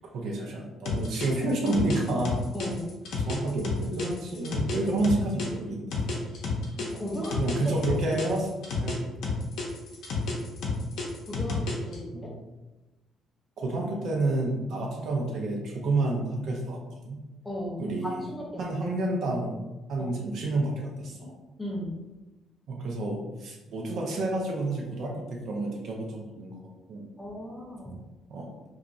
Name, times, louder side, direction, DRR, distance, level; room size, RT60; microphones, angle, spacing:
voice 1, 0.1-2.4 3.3-6.2 7.4-8.5 8.7-9.0 12.1-12.3 13.6-16.8 17.1-17.2 17.8-18.2 18.6-19.6 19.9-21.4 22.7-26.6 26.9-27.1 28.3-28.5, right 2 dB, 55° right, -1 dB, 0.5 m, -29 dB
sound 1, 0.9-5.5 5.9-9.0 9.2-12.0, left 3 dB, 60° left, 0.6 m, -30 dB
voice 2, 2.5-2.9 6.8-7.4 8.1-8.2 11.3-12.3 17.4-18.7 20.0-20.1 21.6-22.0 27.2-28.0, equal, 10° left, -3 dB, 0.5 m, -36 dB
2.9 x 2.3 x 2.5 m, 1.1 s
cardioid pair, 175°, 0 cm